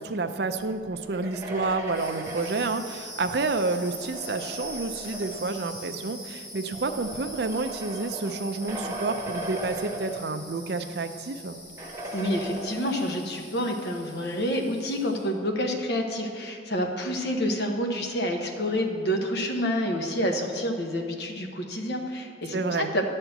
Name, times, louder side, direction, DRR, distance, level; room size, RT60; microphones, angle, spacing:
voice 1, 0.0-11.6 22.5-22.9, right 3 dB, 55° right, 8 dB, 0.5 m, -29 dB
sound 1, 0.9-5.6 6.5-10.7 11.0-11.1 11.8-13.3, right 1 dB, 15° right, 0.9 m, -38 dB
sound 2, 1.8-15.3, equal, 30° left, 2.9 m, -43 dB
voice 2, 12.1-23.0, equal, 60° left, 3 dB, 1.1 m, -28 dB
11.0 x 4.4 x 7.9 m, 2.3 s
head